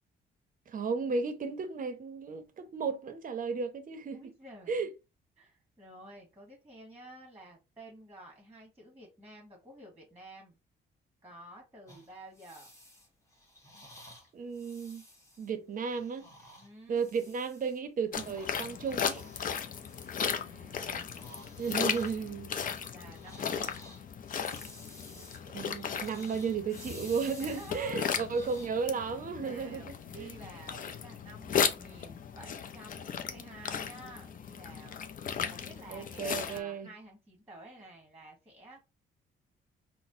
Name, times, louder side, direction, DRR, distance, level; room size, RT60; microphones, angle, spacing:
voice 1, 0.7-4.3 4.7-4.9 14.3-15.0 15.4-16.3 16.9-19.3 21.6-22.5 25.4-30.3 35.9-36.9, right 5 dB, 45° right, 0.6 m, -34 dB
voice 2, 4.1-4.9 5.4-10.6 11.2-12.7 16.6-17.1 20.1-21.4 22.9-23.8 27.4-28.2 29.4-35.0 35.4-38.8, right 1 dB, 10° right, 1.2 m, -51 dB
sound 1, 11.9-17.8 18.2-20.6 20.9-28.7, left 1 dB, 15° left, 1.1 m, -54 dB
sound 2, 18.1-36.6, left 7 dB, 45° left, 0.5 m, -36 dB
4.0 x 2.0 x 2.6 m
cardioid pair, 90°, 20 cm